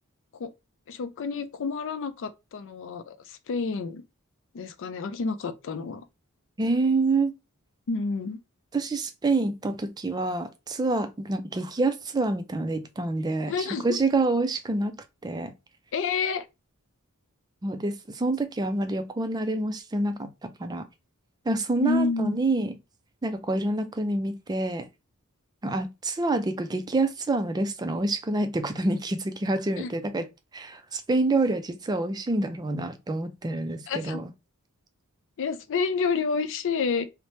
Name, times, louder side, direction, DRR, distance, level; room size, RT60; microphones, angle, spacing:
voice 1, 0.9-4.0 4.5-6.0 7.9-8.4 13.5-14.0 15.9-16.5 21.8-22.4 29.8-29.9 33.9-34.2 35.4-37.0, left 4 dB, 60° left, 0.4 m, -29 dB
voice 2, 6.6-7.3 8.7-15.0 15.2-15.5 17.6-20.9 21.5-22.7 23.2-24.9 25.6-30.3 30.5-34.3, right 2 dB, 20° right, 0.3 m, -27 dB
2.8 x 2.1 x 3.1 m
head